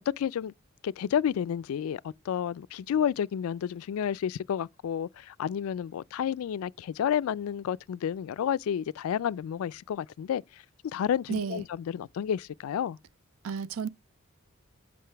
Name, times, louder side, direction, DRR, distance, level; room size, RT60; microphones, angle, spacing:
voice 1, 0.1-0.5 0.8-10.4 10.8-13.0, left 8 dB, 85° left, 0.3 m, -30 dB
voice 2, 11.3-11.6 13.4-13.9, right 6 dB, 90° right, 0.5 m, -32 dB
7.6 x 5.2 x 3.3 m
head